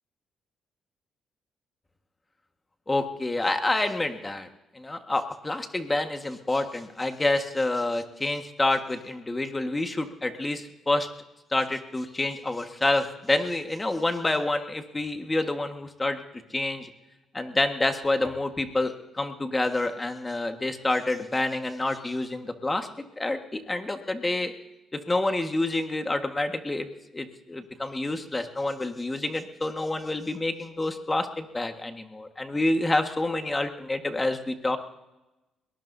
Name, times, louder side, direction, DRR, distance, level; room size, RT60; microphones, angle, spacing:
voice 1, 2.9-4.5 4.7-11.1 11.5-16.2 16.5-16.9 17.3-22.9 23.2-24.5 24.9-26.9 27.1-34.8, left 2 dB, 20° left, 6 dB, 1.6 m, -28 dB
22.0 x 19.0 x 2.7 m, 0.99 s
cardioid pair, 90°, 0 cm